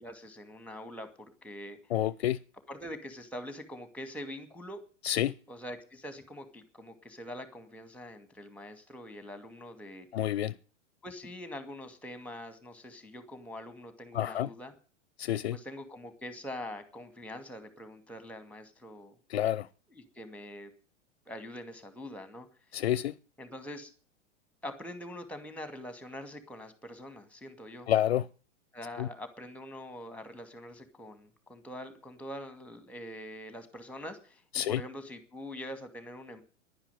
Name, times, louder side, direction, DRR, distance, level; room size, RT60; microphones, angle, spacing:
voice 1, 0.0-1.8 2.7-4.8 5.5-10.1 11.0-14.7 15.5-19.2 19.9-20.7 21.3-22.5 23.4-23.9 24.6-27.9 28.7-36.4, left 1 dB, 5° left, 2.4 m, -44 dB
voice 2, 1.9-2.4 5.0-5.3 10.1-10.5 14.1-14.5 15.2-15.6 19.3-19.7 22.7-23.1 27.9-28.2 29.0-29.1 34.5-34.8, left 12 dB, 60° left, 0.6 m, -28 dB
11.0 x 10.0 x 9.5 m
figure-of-eight pair, 100°, 36 cm